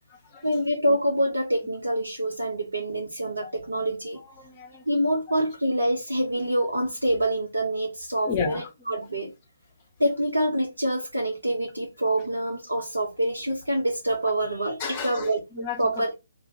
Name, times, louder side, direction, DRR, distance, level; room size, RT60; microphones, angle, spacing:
voice 1, 0.4-4.2 4.9-9.3 10.0-15.4 15.8-16.1, right 1 dB, 80° right, 0.7 m, -26 dB
voice 2, 4.4-4.8 8.3-8.7 14.8-16.2, left 5 dB, 30° left, 0.9 m, -32 dB
2.5 x 2.5 x 3.3 m
figure-of-eight pair, 135°, 0 cm